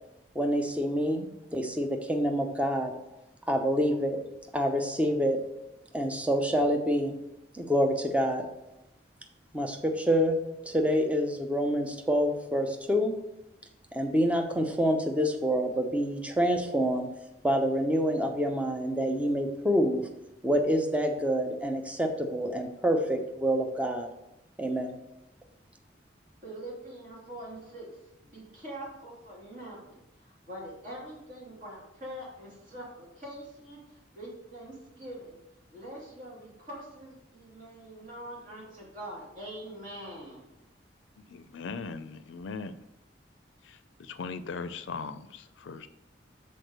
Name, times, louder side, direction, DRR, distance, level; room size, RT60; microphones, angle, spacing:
voice 1, 0.3-2.9 3.5-4.2 4.5-5.4 5.9-7.1 7.5-8.5 9.5-10.4 10.6-13.1 13.9-17.1 17.4-20.1 20.4-24.1 24.6-24.9, equal, 5° right, 3 dB, 0.7 m, -27 dB
voice 2, 26.4-35.4 35.7-40.4, right 1 dB, 45° right, -5 dB, 3.1 m, -44 dB
voice 3, 41.2-42.8 43.6-45.9, left 4 dB, 80° left, 12 dB, 0.4 m, -39 dB
6.5 x 4.2 x 6.5 m, 0.89 s
head